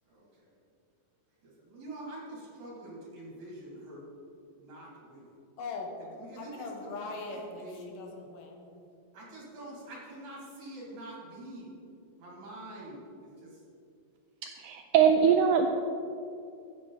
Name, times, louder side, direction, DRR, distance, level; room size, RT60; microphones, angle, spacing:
voice 1, 0.1-0.6 1.4-4.0 4.6-5.4 6.1-6.7 7.2-7.9 9.1-11.8 12.2-13.6, right 1 dB, 60° right, -4 dB, 4.0 m, -46 dB
voice 2, 5.6-5.9 6.4-8.8, left 3 dB, 75° left, 2 dB, 2.8 m, -40 dB
voice 3, 14.6-15.7, right 7 dB, 80° right, 5 dB, 1.8 m, -22 dB
13.5 x 8.5 x 4.0 m, 2.6 s
omnidirectional pair, 3.9 m